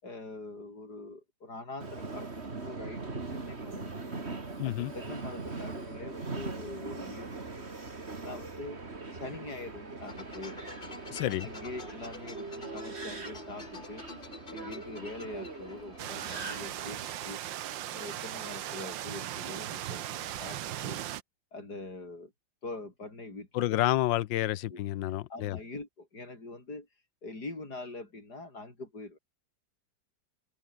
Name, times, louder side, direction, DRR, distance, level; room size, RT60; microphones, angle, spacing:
voice 1, 0.0-4.3 4.6-7.6 8.2-8.8 9.1-10.7 11.4-14.0 14.5-17.4 17.9-20.0 20.4-21.0 21.5-22.3 22.6-23.8 24.7-24.8 25.3-26.9 27.2-29.2, left 2 dB, 60° left, 6.9 m, -44 dB
Subway metro underground, 1.8-17.1, right 3 dB, 35° right, 2.8 m, -41 dB
voice 2, 4.6-4.9 11.1-11.5 23.5-25.6, left 14 dB, 85° left, 1.5 m, -29 dB
sound 1, 10.0-16.5, left 3 dB, 30° left, 2.2 m, -48 dB
sound 2, 16.0-21.2, right 12 dB, 85° right, 1.6 m, -38 dB
omnidirectional pair, 2.0 m